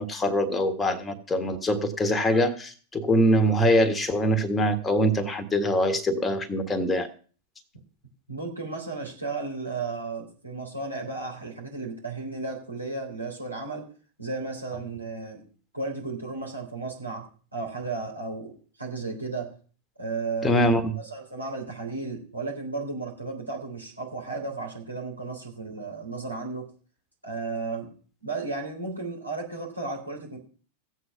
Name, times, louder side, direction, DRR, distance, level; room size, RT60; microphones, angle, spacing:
voice 1, 0.0-7.1 20.4-21.0, equal, 15° left, 8 dB, 1.6 m, -23 dB
voice 2, 8.3-13.9 14.2-15.4 15.7-19.6 20.0-20.6 21.0-26.7 27.2-27.9 28.2-30.4, right 3 dB, 85° right, -1 dB, 3.7 m, -34 dB
15.5 x 8.3 x 5.8 m, 0.41 s
figure-of-eight pair, 90°, 0 cm